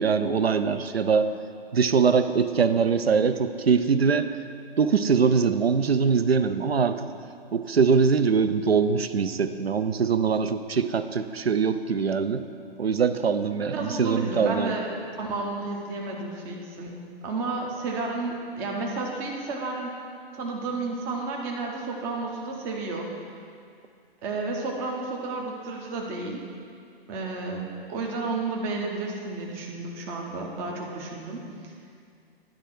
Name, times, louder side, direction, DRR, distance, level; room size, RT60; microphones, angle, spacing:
voice 1, 0.0-1.3 1.7-4.4 4.8-7.1 7.5-12.4 12.8-14.7, right 5 dB, 90° right, 10 dB, 0.5 m, -23 dB
voice 2, 13.7-14.9 15.2-17.0 17.2-20.0 20.3-23.1 24.2-26.5 27.1-31.7, right 3 dB, 10° right, 0 dB, 0.4 m, -32 dB
10.5 x 3.5 x 6.1 m, 2.3 s
figure-of-eight pair, 120°, 30 cm